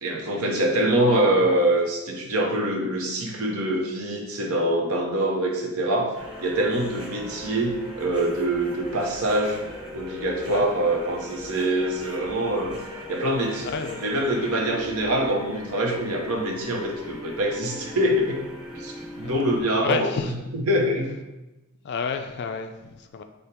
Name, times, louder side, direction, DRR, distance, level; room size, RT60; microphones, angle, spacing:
voice 1, 0.0-6.1 6.4-9.6 9.9-12.8 13.1-13.7 14.0-18.5 18.7-20.1 20.5-21.2, right 1 dB, 80° right, 1 dB, 0.8 m, -24 dB
sound 1, 6.1-19.6, left 1 dB, 20° right, 1.0 m, -39 dB
voice 2, 13.6-14.2 19.2-19.4 19.8-20.4 21.8-23.2, left 5 dB, 50° left, 6 dB, 0.3 m, -30 dB
5.1 x 2.1 x 4.3 m, 1.0 s
head